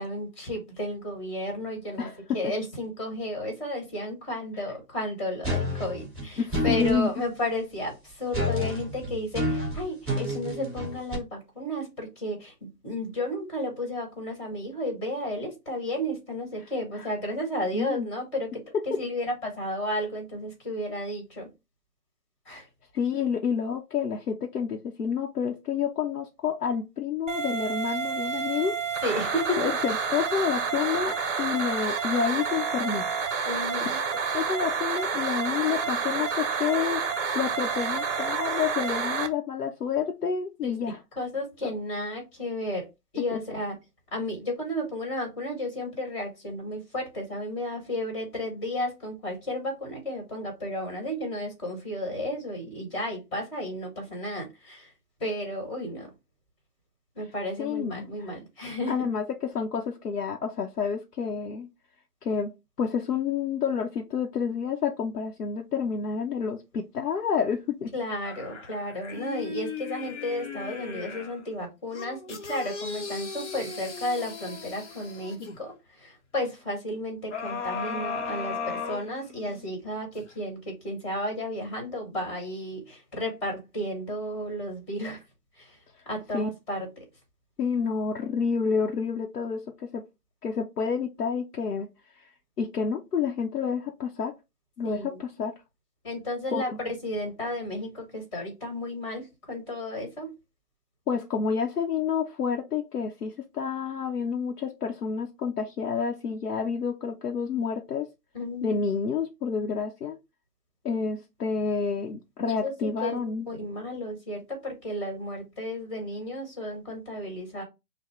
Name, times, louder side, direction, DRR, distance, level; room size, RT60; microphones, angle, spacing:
voice 1, 0.0-2.1 2.3-21.5 22.4-22.6 29.0-29.7 33.4-34.0 40.6-40.8 41.1-42.9 43.1-43.8 44.1-54.9 55.2-56.1 57.1-58.9 67.9-85.2 85.6-85.8 86.0-87.0 94.8-95.2 96.0-100.3 108.3-108.8 112.4-113.2 113.5-117.6, left 1 dB, 20° left, 1.6 m, -33 dB
voice 2, 2.0-2.4 6.4-7.1 17.0-17.1 17.7-18.1 18.9-19.0 22.9-28.8 29.6-33.1 34.3-41.0 57.6-58.3 58.9-61.7 62.2-67.9 86.3-86.5 87.6-90.1 90.4-92.3 92.6-94.3 94.8-95.5 96.5-96.6 101.1-108.1 108.6-110.2 110.8-113.5, left 6 dB, 75° left, 0.8 m, -29 dB
sound 1, 5.4-7.0 8.3-11.1, equal, ahead, 1.5 m, -29 dB
sound 2, 27.3-39.3, right 5 dB, 50° right, 0.7 m, -29 dB
sound 3, 68.2-71.4 71.9-75.6 77.3-79.6 80.2-80.3, left 5 dB, 45° left, 0.9 m, -36 dB
5.7 x 2.2 x 3.0 m
hypercardioid pair, 155°, 47 cm